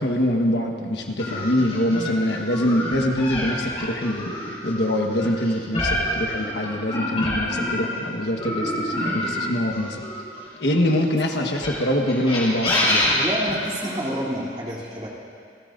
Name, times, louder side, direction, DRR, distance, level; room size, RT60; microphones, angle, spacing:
voice 1, 0.0-4.3 4.6-10.0 10.6-13.1, left 1 dB, 75° left, 2 dB, 1.4 m, -24 dB
sound 1, 1.2-8.0 8.4-10.8 11.5-14.1, left 1 dB, 35° left, 4.8 m, -27 dB
voice 2, 13.1-15.1, equal, 30° right, -6 dB, 3.2 m, -29 dB
29.0 x 17.0 x 2.7 m, 2.2 s
head